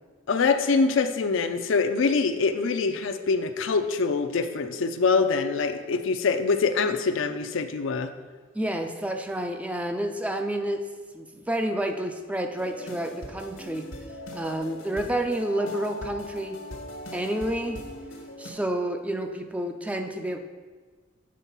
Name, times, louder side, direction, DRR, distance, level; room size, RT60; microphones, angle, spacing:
voice 1, 0.3-8.1, left 4 dB, 65° left, 8 dB, 0.5 m, -24 dB
voice 2, 8.5-10.8 11.1-13.9 14.3-16.6 17.1-17.8 18.4-20.4, right 1 dB, 5° right, 5 dB, 0.4 m, -29 dB
sound 1, 12.6-18.5, left 1 dB, 85° left, 1.4 m, -40 dB
7.5 x 4.4 x 5.5 m, 1.4 s
head